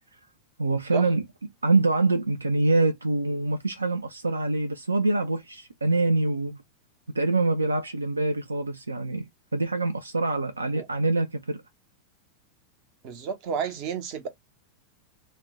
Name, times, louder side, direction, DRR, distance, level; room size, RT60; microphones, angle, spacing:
voice 1, 0.6-1.2 1.6-6.6 7.1-9.3 9.5-11.6, right 2 dB, 80° right, 0.3 m, -25 dB
voice 2, 13.0-14.3, right 7 dB, 45° right, 0.7 m, -31 dB
2.5 x 2.1 x 3.5 m
figure-of-eight pair, 90°, 0 cm